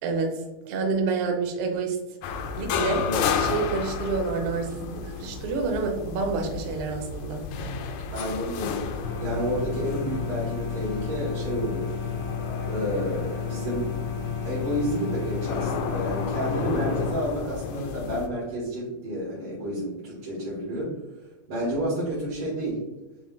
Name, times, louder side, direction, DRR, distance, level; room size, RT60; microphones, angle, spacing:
voice 1, 0.0-2.0 2.5-3.0 3.4-7.4, right 4 dB, 85° right, 3 dB, 1.2 m, -28 dB
sound 1, 2.2-18.3, left 5 dB, 85° left, 2.0 m, -32 dB
voice 2, 8.1-8.8 9.2-11.9 12.6-13.9 14.4-20.9 21.5-22.8, equal, 60° right, -9 dB, 2.4 m, -30 dB
sound 2, 9.0-17.1, left 7 dB, 60° left, 1.9 m, -32 dB
7.4 x 3.2 x 2.2 m, 1.1 s
omnidirectional pair, 3.5 m